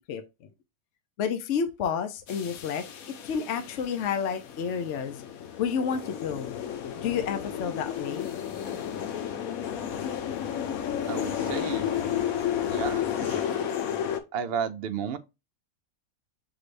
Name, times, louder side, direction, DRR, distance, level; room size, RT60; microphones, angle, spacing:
voice 1, 1.2-2.8 3.2-5.2 5.6-6.5 7.0-8.3, left 7 dB, 65° left, 0.9 m, -30 dB
sound 1, 2.3-14.2, left 9 dB, 85° left, 1.2 m, -32 dB
voice 2, 11.1-11.9 12.7-13.4 14.3-15.2, right 7 dB, 60° right, 0.7 m, -33 dB
6.0 x 3.3 x 2.5 m
omnidirectional pair, 1.5 m